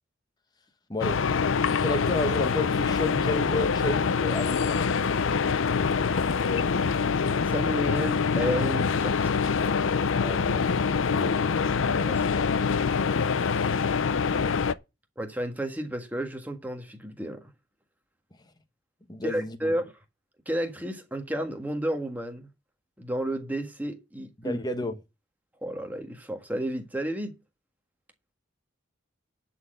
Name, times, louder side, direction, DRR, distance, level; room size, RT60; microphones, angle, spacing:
sound 1, 1.0-14.7, left 5 dB, 75° left, 0.5 m, -25 dB
voice 1, 1.8-4.9 10.1-10.7 11.1-11.6 19.1-19.6 24.4-25.0, left 2 dB, 20° left, 1.1 m, -31 dB
voice 2, 7.5-9.5 11.3-11.4 11.8-12.6 13.5-13.7 15.2-17.5 19.2-19.9 20.4-22.5 23.0-24.6 25.6-27.4, equal, 10° right, 1.5 m, -32 dB
11.0 x 4.4 x 7.9 m
head